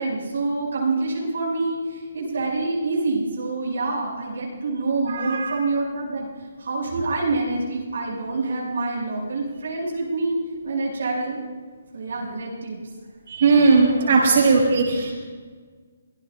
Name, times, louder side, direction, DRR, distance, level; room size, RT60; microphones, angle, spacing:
voice 1, 0.0-6.3 6.6-11.4 11.9-12.8 14.0-14.3, right 3 dB, 75° right, -3 dB, 5.8 m, -26 dB
voice 2, 5.1-5.5 13.3-15.1, right 4 dB, 55° right, -2 dB, 5.8 m, -18 dB
25.0 x 17.5 x 2.4 m, 1.5 s
hypercardioid pair, 155°, 0 cm